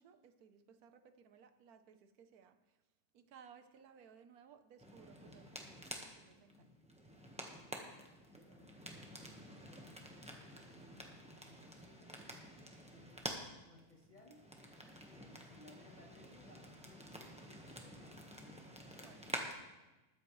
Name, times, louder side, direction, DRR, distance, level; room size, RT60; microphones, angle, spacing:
voice 1, 0.0-2.8 3.1-5.8 6.0-6.7 19.0-19.2, right 7 dB, 65° right, 9 dB, 1.3 m, -61 dB
sound 1, 4.8-19.5, equal, 5° right, 0.9 m, -50 dB
voice 2, 8.2-12.3 12.9-14.5 15.1-19.5, left 1 dB, 30° left, 0 dB, 1.2 m, -64 dB
21.0 x 8.2 x 3.2 m, 1.1 s
omnidirectional pair, 1.8 m